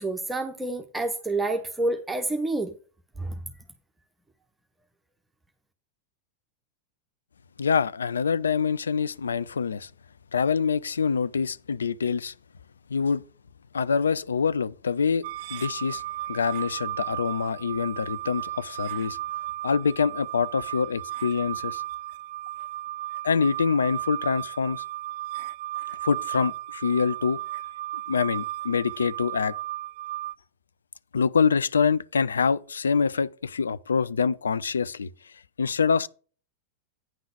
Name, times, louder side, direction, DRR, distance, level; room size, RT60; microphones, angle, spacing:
voice 1, 0.0-2.7 3.2-3.4, right 2 dB, 10° right, 0.8 m, -28 dB
voice 2, 7.6-9.9 10.3-12.3 12.9-13.2 13.7-15.2 15.5-16.0 16.3-19.2 19.6-21.8 23.2-24.8 26.0-27.4 28.1-29.6 31.1-35.1 35.6-36.1, left 6 dB, 70° left, 0.4 m, -25 dB
sound 1, 15.2-30.3, right 15 dB, 45° right, 0.4 m, -35 dB
9.1 x 3.9 x 6.8 m
figure-of-eight pair, 90°, 0 cm